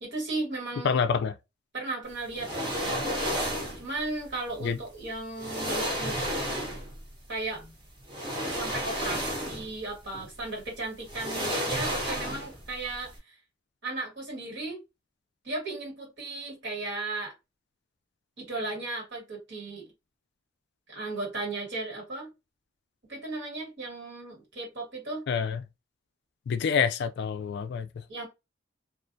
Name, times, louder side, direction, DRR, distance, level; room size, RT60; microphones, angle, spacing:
voice 1, 0.0-1.0 1.7-2.9 3.8-6.2 7.3-7.7 8.5-13.3 13.8-14.8 15.4-17.3 18.4-19.9 20.9-22.3 23.1-25.2 28.1-28.3, right 2 dB, 65° right, 1.5 m, -36 dB
voice 2, 0.8-1.3 4.6-4.8 25.3-25.6 26.5-28.0, left 6 dB, 60° left, 0.3 m, -27 dB
sound 1, 2.3-3.9 4.9-5.0 5.4-7.0 8.1-9.8 10.1-10.3 11.1-12.7 12.9-13.1, equal, 25° right, 0.9 m, -31 dB
2.3 x 2.2 x 2.5 m
head